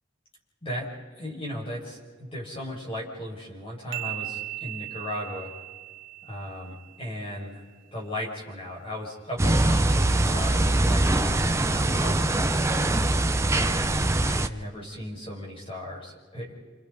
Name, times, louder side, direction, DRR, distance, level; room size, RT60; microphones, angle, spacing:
voice 1, 1.2-5.5 6.2-7.6 7.9-12.5 13.5-16.5, equal, 25° left, -3 dB, 6.0 m, -36 dB
sound 1, 3.9-7.5, right 19 dB, 60° right, 0.6 m, -38 dB
sound 2, 9.4-14.5, right 2 dB, 15° right, 0.6 m, -23 dB
28.5 x 28.0 x 4.1 m, 1.4 s
head